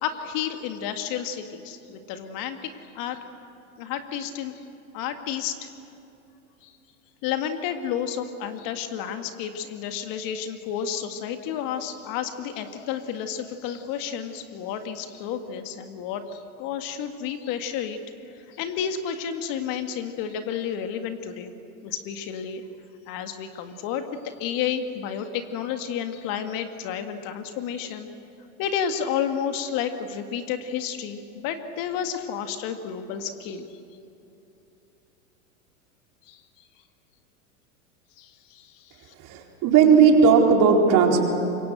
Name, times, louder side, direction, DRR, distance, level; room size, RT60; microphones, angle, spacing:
voice 1, 0.0-3.2 3.8-4.6 4.9-5.7 6.6-6.7 7.2-18.0 18.5-21.5 21.8-22.6 23.1-28.1 28.6-33.7 36.3-36.4 38.2-38.9, left 8 dB, 50° left, 7 dB, 2.0 m, -31 dB
voice 2, 39.2-41.3, right 6 dB, 45° right, 1 dB, 4.4 m, -17 dB
26.0 x 23.0 x 8.0 m, 2.9 s
hypercardioid pair, 100°, 44 cm